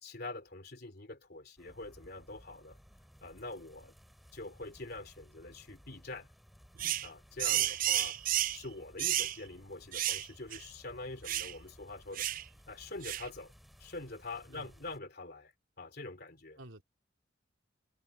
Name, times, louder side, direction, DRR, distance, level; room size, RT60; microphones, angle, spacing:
voice 1, 0.0-2.8 3.2-3.9 4.3-6.3 7.0-8.2 8.5-12.3 12.7-13.5 13.8-16.6, left 2 dB, 50° left, 3.0 m, -45 dB
sound 1, 1.6-15.0, equal, ahead, 2.9 m, -59 dB
sound 2, 6.8-7.1 7.4-8.6 9.0-9.4 9.9-10.3 10.5-10.6 11.3-11.5 12.2-12.4 13.0-13.3, right 13 dB, 45° right, 0.3 m, -31 dB
voice 2, 7.5-7.8 14.5-14.7 16.6-16.8, right 1 dB, 80° right, 3.6 m, -49 dB
head